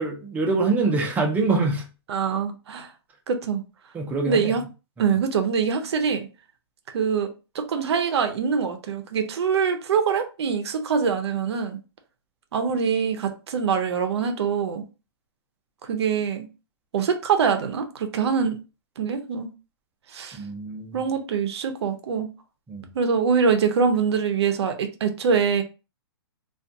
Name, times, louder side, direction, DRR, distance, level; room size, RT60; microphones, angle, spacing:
voice 1, 0.0-1.9 3.9-4.5 5.0-5.1 20.3-21.0 22.7-22.9, right 3 dB, 10° right, 0.5 m, -25 dB
voice 2, 2.1-2.9 3.3-3.6 4.3-4.6 5.0-6.3 6.9-7.3 7.5-11.8 12.5-14.8 15.8-16.5 16.9-18.6 19.0-19.5 20.1-20.4 20.9-22.3 22.9-25.6, right 6 dB, 75° right, 0.5 m, -24 dB
2.4 x 2.3 x 2.6 m
hypercardioid pair, 145°, 14 cm